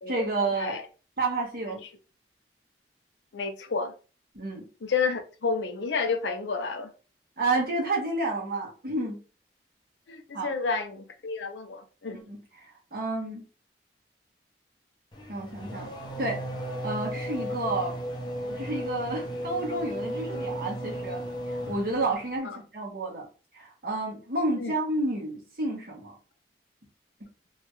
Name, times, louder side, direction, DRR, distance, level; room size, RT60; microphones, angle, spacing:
voice 1, 0.1-0.8 1.2-1.8 4.3-4.7 7.4-9.2 10.3-10.5 12.1-13.5 15.3-15.9 16.2-16.4 16.8-17.9 18.6-23.3 23.5-26.1, right 2 dB, 55° right, 1.0 m, -30 dB
voice 2, 3.3-3.9 4.8-6.9 10.1-12.2 22.4-22.6 24.6-24.7, left 4 dB, 85° left, 0.5 m, -30 dB
Race car auto racing / Accelerating revving vroom, 15.1-22.4, equal, 25° left, 0.5 m, -35 dB
2.8 x 2.3 x 2.9 m
head